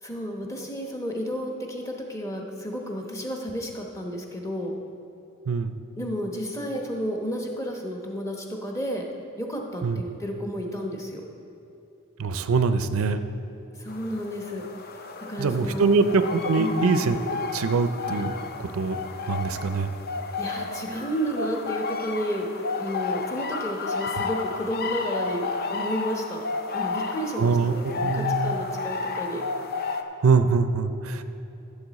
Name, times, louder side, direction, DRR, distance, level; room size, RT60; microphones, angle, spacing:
voice 1, 0.0-4.7 6.0-9.1 9.4-11.2 13.7-14.6 15.2-15.9 16.6-17.0 20.4-22.5 22.8-26.4 26.7-29.4, equal, 15° left, 1 dB, 0.9 m, -32 dB
voice 2, 5.5-5.8 9.8-10.0 12.2-13.2 15.4-17.2 17.5-18.3 18.6-19.0 19.3-19.9 27.4-28.5 30.2-31.2, right 4 dB, 70° right, 10 dB, 0.5 m, -23 dB
sound 1, 13.9-30.0, left 4 dB, 45° left, 0.5 m, -32 dB
14.0 x 6.9 x 4.1 m, 3.0 s
head